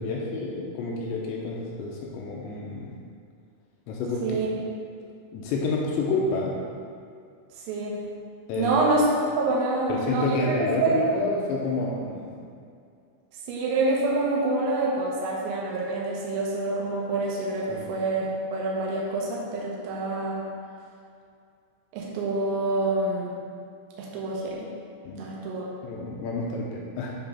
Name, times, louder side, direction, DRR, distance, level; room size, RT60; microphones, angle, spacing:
voice 1, 0.0-2.9 3.9-4.4 5.3-6.6 8.5-8.8 9.9-12.4 17.7-17.9 25.0-25.3 25.8-27.2, left 3 dB, 85° left, -2 dB, 2.7 m, -29 dB
voice 2, 8.6-9.1 9.4-11.1 13.5-20.5 21.9-23.3 24.0-24.7 25.2-25.7, right 2 dB, 90° right, -4 dB, 3.8 m, -26 dB
10.0 x 3.5 x 5.5 m, 2.4 s
omnidirectional pair, 5.8 m